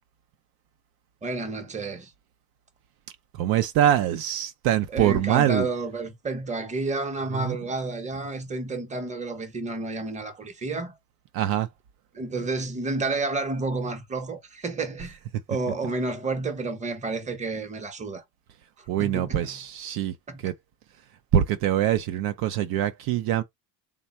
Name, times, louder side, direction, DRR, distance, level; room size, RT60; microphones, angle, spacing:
voice 1, 1.2-2.1 4.9-10.9 12.1-15.2 15.5-18.2 19.0-19.5 20.3-20.5, right 3 dB, 15° right, 0.9 m, -30 dB
voice 2, 3.3-5.7 7.3-7.6 11.3-11.7 18.9-20.1 20.4-20.5 21.3-23.4, right 11 dB, 65° right, 0.6 m, -24 dB
3.5 x 2.2 x 4.2 m
cardioid pair, 110°, 40 cm